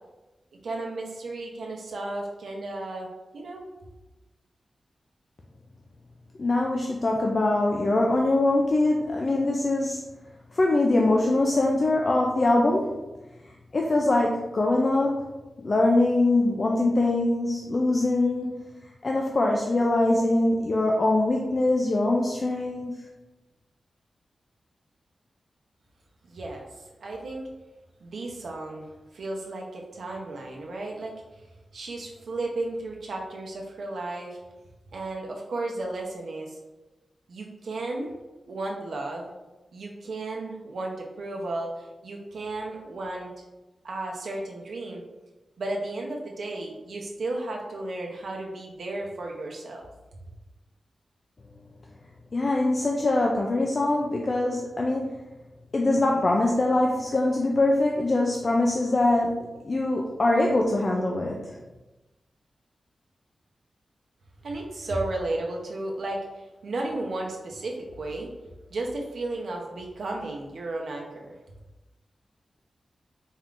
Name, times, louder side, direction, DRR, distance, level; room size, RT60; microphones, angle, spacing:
voice 1, 0.6-3.6 26.3-27.5 28.0-31.2 31.7-34.4 34.9-36.6 37.3-38.1 38.5-39.3 39.7-43.3 43.8-45.0 45.6-49.9 64.4-68.3 68.7-71.3, right 2 dB, 75° right, 0 dB, 0.7 m, -34 dB
voice 2, 6.4-10.0 10.5-13.0 13.7-15.2 15.6-18.7 19.0-23.0 52.3-55.2 55.7-61.5, left 2 dB, 40° left, 0 dB, 0.3 m, -23 dB
4.2 x 3.6 x 2.5 m, 1.1 s
wide cardioid pair, 165°, 0 cm